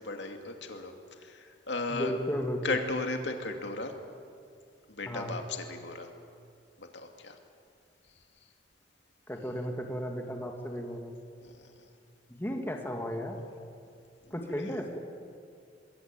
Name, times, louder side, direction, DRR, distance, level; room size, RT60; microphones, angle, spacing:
voice 1, 0.0-2.1 2.6-4.0 4.9-6.1 6.8-7.4 8.2-8.3 11.4-11.9 14.5-14.8, left 2 dB, 70° left, 4 dB, 2.5 m, -36 dB
voice 2, 1.9-2.6 5.1-5.3 9.3-11.2 12.3-13.4 14.3-15.0, equal, 10° left, 2 dB, 2.2 m, -34 dB
26.0 x 21.5 x 9.0 m, 2.3 s
head